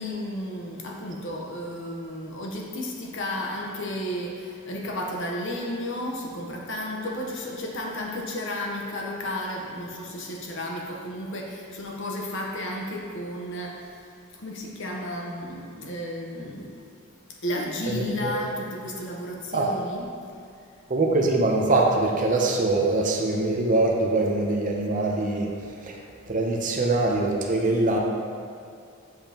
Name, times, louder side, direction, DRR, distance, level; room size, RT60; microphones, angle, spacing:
voice 1, 0.0-14.0 14.4-16.7 17.4-20.0, left 1 dB, 60° left, -1 dB, 0.9 m, -33 dB
voice 2, 17.9-18.3 19.5-19.7 20.9-25.5 25.9-26.0 26.3-28.0, right 2 dB, 40° right, 0 dB, 0.7 m, -23 dB
7.7 x 5.2 x 2.9 m, 2.4 s
head